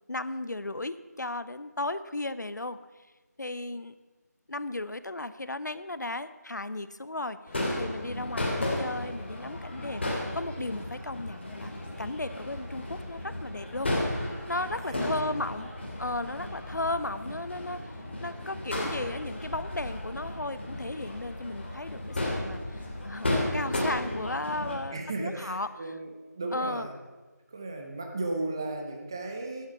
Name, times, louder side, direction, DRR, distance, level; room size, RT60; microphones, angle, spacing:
voice 1, 0.1-2.8 3.4-4.0 4.5-13.9 14.5-15.7 16.0-17.8 18.2-22.6 23.0-25.7 26.5-26.9, left 2 dB, 90° left, 14 dB, 0.8 m, -35 dB
Crowd / Fireworks, 7.5-24.8, left 1 dB, 40° left, 2.4 m, -34 dB
voice 2, 14.8-15.4 24.9-26.9 27.5-29.7, right 2 dB, 15° right, 3 dB, 0.7 m, -35 dB
11.0 x 9.7 x 6.0 m, 1.2 s
figure-of-eight pair, 170°, 9 cm